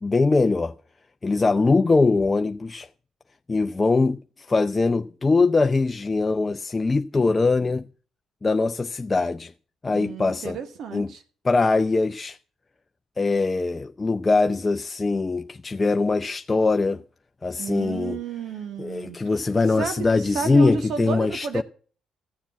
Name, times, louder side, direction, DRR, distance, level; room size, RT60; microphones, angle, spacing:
voice 1, 0.0-0.7 1.2-2.9 3.5-7.8 8.4-9.5 9.8-10.6 10.9-11.1 11.4-12.4 13.2-17.0 17.4-18.2 18.8-21.6, left 3 dB, 30° left, 0.5 m, -22 dB
voice 2, 9.9-11.2 17.6-19.2 19.8-21.6, right 6 dB, 70° right, 1.7 m, -32 dB
14.5 x 7.2 x 7.3 m
supercardioid pair, 60°, 0 cm